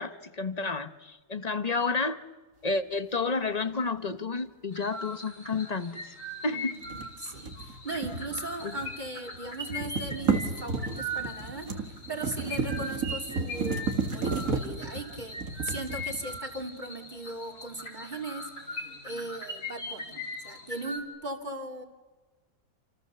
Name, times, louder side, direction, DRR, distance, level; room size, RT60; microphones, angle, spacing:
voice 1, 0.0-2.2 2.6-6.1 6.4-6.8 8.6-8.8, left 4 dB, 30° left, 1.1 m, -31 dB
sound 1, 4.7-21.0, left 1 dB, 55° left, 4.1 m, -40 dB
voice 2, 6.5-21.8, right 2 dB, 25° right, 3.1 m, -38 dB
sound 2, 6.8-9.1 9.3-16.6, right 4 dB, 60° right, 2.3 m, -33 dB
28.5 x 28.0 x 6.9 m
omnidirectional pair, 1.7 m